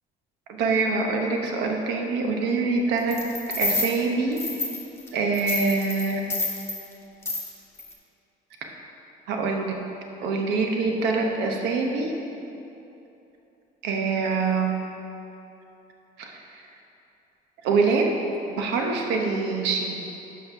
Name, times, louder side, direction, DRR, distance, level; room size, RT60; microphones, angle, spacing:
voice 1, 0.5-3.2 3.6-4.4 5.1-6.2 9.3-9.7 10.2-12.1 13.8-14.7 16.2-16.6 17.6-18.2 18.5-20.0, right 4 dB, 90° right, 2 dB, 0.9 m, -25 dB
sound 1, 3.1-3.9 4.4-5.1 5.3-6.8 7.2-7.5 7.8-7.9, left 2 dB, 15° left, 1.2 m, -29 dB
5.8 x 5.4 x 5.5 m, 2.9 s
cardioid pair, 110°, 17 cm